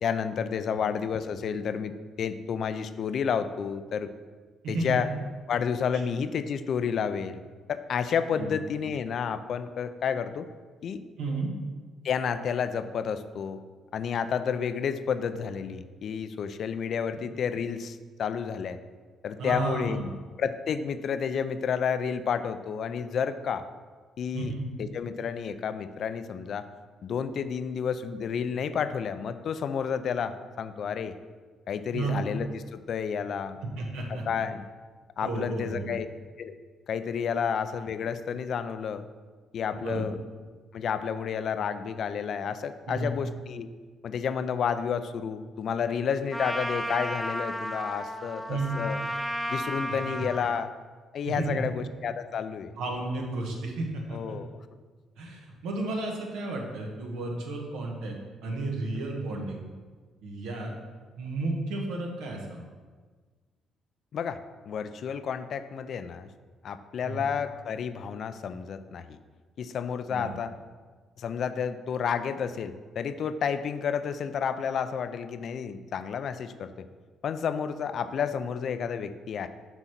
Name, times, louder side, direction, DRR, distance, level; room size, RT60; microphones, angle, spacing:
voice 1, 0.0-4.1 4.7-5.1 5.5-7.4 7.7-10.5 10.8-11.0 12.0-13.6 13.9-18.8 19.2-20.0 20.4-23.7 24.2-24.5 24.8-26.7 27.0-31.1 31.7-33.6 34.3-34.6 35.2-36.1 36.4-36.6 36.9-39.0 39.5-40.1 40.7-43.7 44.0-49.0 49.5-50.7 51.1-52.7 54.1-54.5 64.1-64.4 64.7-66.3 66.6-69.2 69.6-70.5 71.2-76.9 77.2-79.5, left 7 dB, 60° left, 11 dB, 0.4 m, -30 dB
voice 2, 4.6-5.0 8.4-8.5 11.2-11.5 19.4-20.0 24.3-24.7 31.9-32.2 33.6-34.2 35.2-35.9 39.8-40.1 42.9-43.2 48.5-48.7 50.2-50.3 51.2-51.7 52.8-54.4 55.2-58.1 58.4-59.6 60.2-60.7 61.2-62.6 67.0-67.2 70.1-70.3, right 2 dB, 85° right, 0 dB, 1.3 m, -32 dB
Trumpet, 46.3-50.6, equal, ahead, 0.5 m, -33 dB
6.1 x 3.9 x 5.8 m, 1.5 s
supercardioid pair, 75°, 0 cm